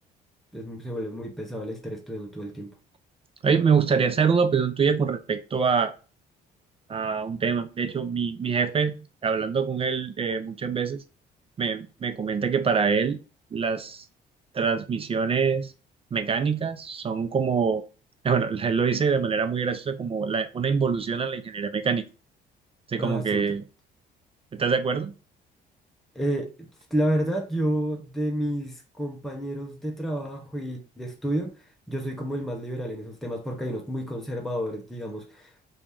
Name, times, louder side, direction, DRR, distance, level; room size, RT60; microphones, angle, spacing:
voice 1, 0.5-2.7 23.0-23.5 26.1-26.5 26.9-31.5 31.9-35.5, right 1 dB, ahead, 0.9 m, -30 dB
voice 2, 3.4-5.9 6.9-11.0 11.6-13.2 13.5-14.0 14.5-15.7 16.1-17.8 18.2-22.1 22.9-23.6 24.5-25.1, right 5 dB, 30° right, 0.5 m, -25 dB
2.9 x 2.7 x 3.5 m
cardioid pair, 95°, 18 cm